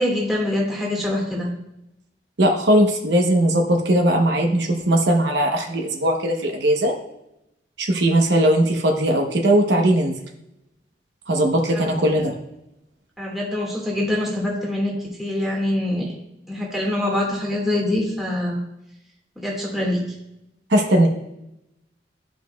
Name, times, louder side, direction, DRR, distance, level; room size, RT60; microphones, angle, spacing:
voice 1, 0.0-1.5 11.7-11.9 13.2-14.9 15.2-16.1 16.5-18.6 19.4-20.0, left 1 dB, ahead, -4 dB, 1.8 m, -24 dB
voice 2, 2.4-6.9 7.8-10.1 11.3-12.3 20.7-21.1, right 1 dB, 70° right, 2 dB, 0.9 m, -19 dB
12.0 x 5.1 x 2.3 m, 0.84 s
head